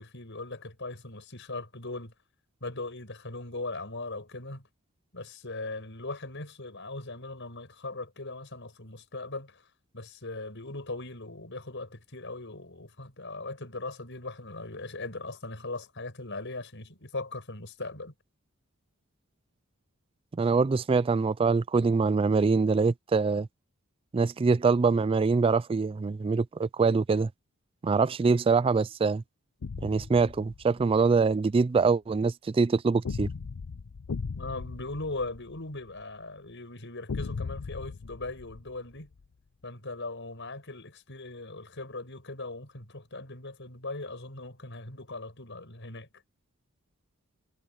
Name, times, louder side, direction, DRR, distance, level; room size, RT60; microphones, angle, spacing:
voice 1, 0.0-2.1 2.6-4.7 5.1-9.6 9.9-18.1 34.3-39.1 39.6-46.1, left 2 dB, 60° left, 6.7 m, -39 dB
voice 2, 20.3-23.5 24.1-27.3 27.8-29.2 29.8-33.3, right 4 dB, 25° right, 0.3 m, -24 dB
sound 1, 29.6-31.0 33.1-36.0 37.1-39.2, left 4 dB, 85° left, 0.6 m, -38 dB
head